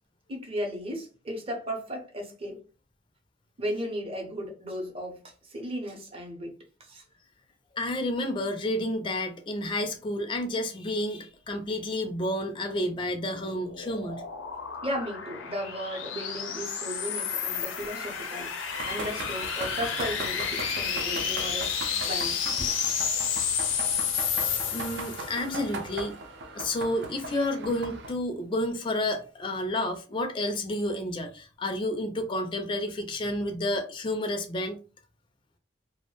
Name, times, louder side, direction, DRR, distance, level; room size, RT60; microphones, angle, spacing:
voice 1, 0.3-2.6 3.6-5.2 5.5-6.5 6.8-7.0 14.8-18.5 18.8-22.7, equal, 30° right, 0.7 m, -35 dB
voice 2, 7.7-14.2 20.6-20.7 24.7-26.2 26.5-34.8, left 1 dB, 25° left, 0.3 m, -30 dB
sound 1, 12.9-25.5, left 7 dB, 85° left, 0.5 m, -31 dB
sound 2, 18.7-28.1, right 2 dB, 65° right, 0.4 m, -39 dB
2.3 x 2.0 x 2.9 m
head